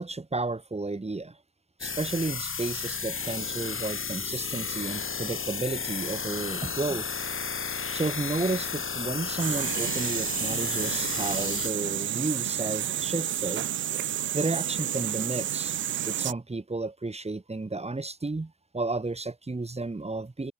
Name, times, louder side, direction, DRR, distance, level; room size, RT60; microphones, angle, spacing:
voice 1, 0.0-1.4 1.8-7.1 7.9-13.7 14.3-20.5, right 3 dB, 20° right, 2.3 m, -32 dB
sound 1, 1.8-11.7, left 5 dB, 35° left, 2.6 m, -33 dB
sound 2, 9.4-16.3, right 11 dB, 35° right, 0.4 m, -30 dB
open air
hypercardioid pair, 45°, 34 cm